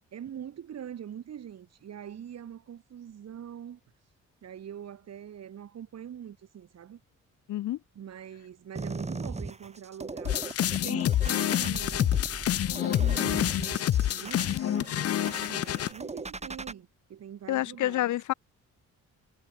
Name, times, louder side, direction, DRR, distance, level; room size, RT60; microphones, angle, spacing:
voice 1, 0.1-3.8 4.4-7.0 8.0-12.2 12.9-18.2, right 9 dB, 60° right, 3.7 m, -43 dB
sound 1, 8.8-16.7, right 3 dB, 20° right, 4.0 m, -39 dB
sound 2, 10.3-15.9, left 12 dB, 50° left, 0.6 m, -27 dB
voice 2, 17.5-18.3, left 14 dB, 75° left, 1.2 m, -28 dB
cardioid pair, 90°, 30 cm